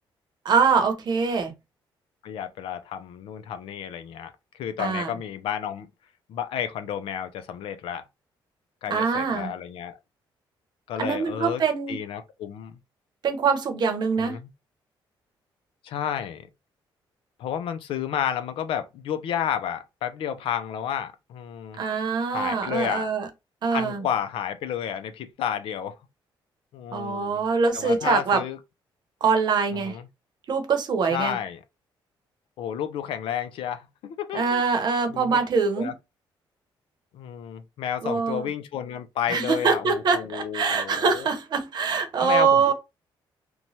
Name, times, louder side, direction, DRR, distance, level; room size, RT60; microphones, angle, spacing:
voice 1, 0.4-1.5 4.8-5.2 8.9-9.5 11.0-12.0 13.2-14.4 21.8-23.3 23.6-24.1 26.9-28.4 29.2-30.0 30.5-31.4 34.3-35.9 38.0-38.5 39.3-42.7, right 5 dB, 55° right, 0.8 m, -24 dB
voice 2, 2.2-5.9 6.3-8.0 8.8-10.0 10.9-11.6 11.9-12.8 14.2-14.5 15.8-16.5 17.4-21.8 22.3-23.1 23.7-26.0 26.7-27.4 27.7-28.6 29.9-30.0 31.1-31.6 32.6-34.6 35.1-35.4 35.8-35.9 37.1-41.3 42.2-42.7, left 9 dB, 80° left, 0.4 m, -31 dB
3.0 x 2.2 x 2.7 m
cardioid pair, 110°, 9 cm